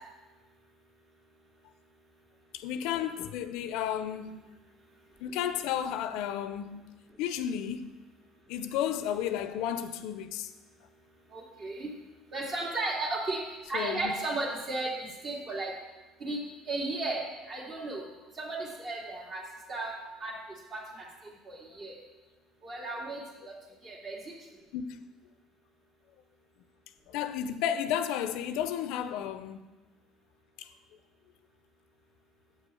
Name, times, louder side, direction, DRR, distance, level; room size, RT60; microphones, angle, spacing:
voice 1, 2.5-4.4 5.2-6.8 7.2-7.9 8.5-10.5 13.7-14.1 20.3-20.4 24.7-25.0 27.1-29.7 30.6-30.7, left 9 dB, 75° left, 0.5 m, -32 dB
voice 2, 11.3-11.9 12.3-13.4 13.7-15.7 16.2-16.4 16.7-17.2 17.5-18.0 18.4-19.4 19.7-19.9 20.2-20.3 20.7-21.1 21.5-21.9 22.6-23.5 23.8-24.2, right 2 dB, 45° right, 2.6 m, -34 dB
7.7 x 5.4 x 6.3 m
supercardioid pair, 95°, 0 cm